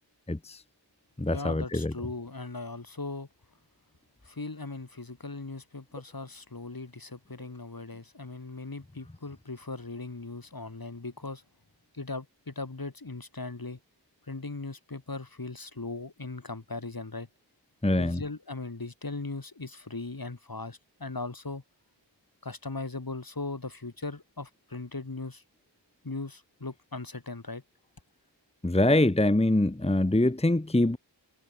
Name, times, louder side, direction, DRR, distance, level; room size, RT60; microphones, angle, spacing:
voice 1, 0.3-0.6 1.2-1.9 17.8-18.2 28.6-31.0, left 1 dB, 15° left, 1.1 m, -24 dB
voice 2, 1.3-3.3 4.2-11.4 11.9-13.8 14.3-17.3 18.0-21.6 22.4-25.4 26.0-27.6, left 3 dB, 50° left, 3.3 m, -38 dB
wide cardioid pair, 55°, 45 cm